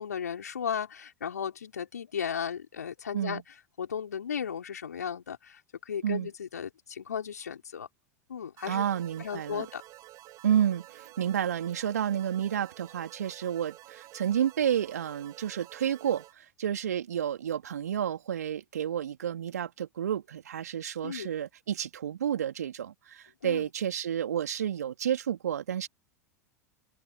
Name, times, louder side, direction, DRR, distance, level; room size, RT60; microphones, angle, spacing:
voice 1, 0.0-3.4 3.8-7.9 8.3-8.8 9.2-9.8 21.0-21.3 23.4-23.7, left 7 dB, 75° left, 5.1 m, -35 dB
sound 1, 8.6-16.3, right 17 dB, 40° right, 5.0 m, -51 dB
voice 2, 8.7-9.7 10.4-25.9, right 9 dB, 70° right, 3.0 m, -30 dB
figure-of-eight pair, 85°, 9 cm